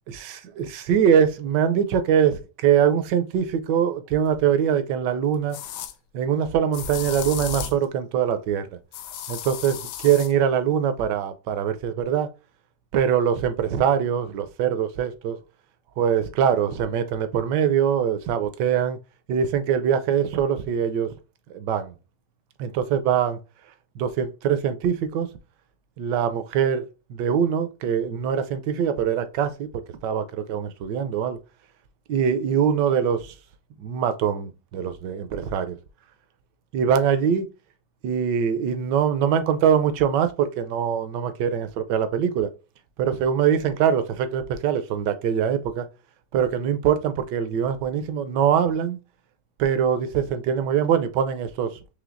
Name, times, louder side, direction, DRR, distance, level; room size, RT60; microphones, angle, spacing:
voice 1, 0.6-5.6 6.1-8.7 9.3-12.3 12.9-15.4 16.0-19.0 19.3-21.1 21.5-21.9 22.6-23.4 24.0-25.3 26.0-26.8 27.1-29.7 30.0-31.4 32.1-33.3 33.8-35.8 36.7-37.5 38.0-42.5 43.0-45.8 46.3-49.0 49.6-51.7, right 8 dB, 70° right, 1.1 m, -23 dB
sound 1, 4.3-4.4 5.5-5.9 6.7-7.8 8.9-10.3, left 7 dB, 80° left, 1.3 m, -34 dB
5.0 x 3.1 x 2.5 m
omnidirectional pair, 2.1 m